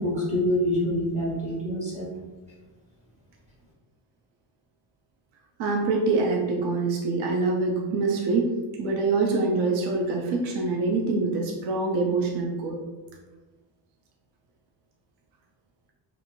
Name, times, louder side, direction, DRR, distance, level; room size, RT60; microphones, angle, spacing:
voice 1, 0.0-2.1, left 1 dB, 15° right, -5 dB, 0.5 m, -26 dB
voice 2, 5.6-8.5 8.8-12.8, right 3 dB, 70° right, 1 dB, 0.6 m, -25 dB
2.5 x 2.5 x 2.9 m, 1.2 s
cardioid pair, 130°, 47 cm